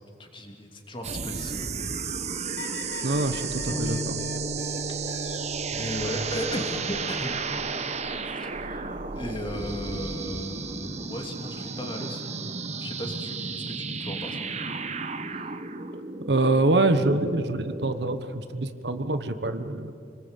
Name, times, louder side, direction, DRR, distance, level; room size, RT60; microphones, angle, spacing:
voice 1, 0.2-1.7 2.8-2.9 3.6-4.0 4.9-5.3 5.7-7.3 8.3-12.3 12.8-14.6 15.1-15.4, equal, 30° left, 3 dB, 2.8 m, -36 dB
sound 1, 1.0-17.9, right 4 dB, 40° right, 1.2 m, -33 dB
sound 2, 2.6-6.3 6.7-7.5 8.9-9.3, left 5 dB, 90° left, 2.0 m, -44 dB
voice 2, 3.0-4.2 16.3-19.9, right 2 dB, 75° right, 10 dB, 1.2 m, -25 dB
Bass guitar, 3.7-10.0, right 1 dB, 15° right, 2.6 m, -39 dB
26.5 x 20.0 x 8.3 m, 2.7 s
head